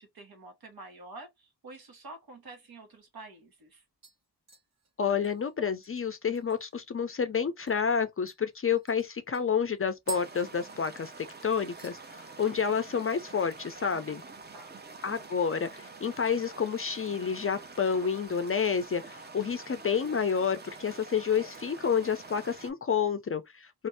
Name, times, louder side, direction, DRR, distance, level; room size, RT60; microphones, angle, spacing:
voice 1, 0.0-3.8 13.9-14.8, right 2 dB, 65° right, 1.4 m, -49 dB
sound 1, 2.9-3.0 3.4-3.7 4.0-6.9 7.2-7.3 7.7-7.8 8.3-11.3 11.5-12.0 12.4-12.8 13.0-13.1 15.2-15.9 16.2-16.9 17.3-17.6 18.2-19.1 19.4-19.5, right 7 dB, 40° right, 1.2 m, -49 dB
voice 2, 5.0-11.1 11.4-14.2 15.0-23.7, left 6 dB, 35° left, 0.4 m, -29 dB
sound 2, 10.1-22.7, right 3 dB, 25° right, 0.6 m, -47 dB
2.6 x 2.5 x 3.2 m
wide cardioid pair, 90°, 39 cm